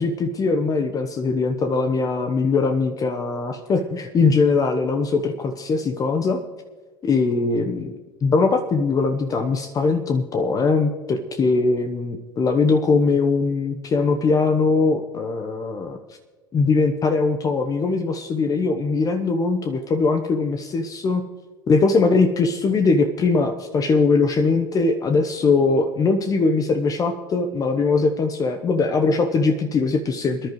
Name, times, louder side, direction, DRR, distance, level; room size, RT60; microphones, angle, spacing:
voice 1, 0.0-6.4 7.0-7.9 8.2-16.0 16.5-21.2 21.7-30.5, left 4 dB, 30° left, 6 dB, 1.0 m, -21 dB
24.0 x 10.5 x 3.1 m, 1.4 s
hypercardioid pair, 80°, 11 cm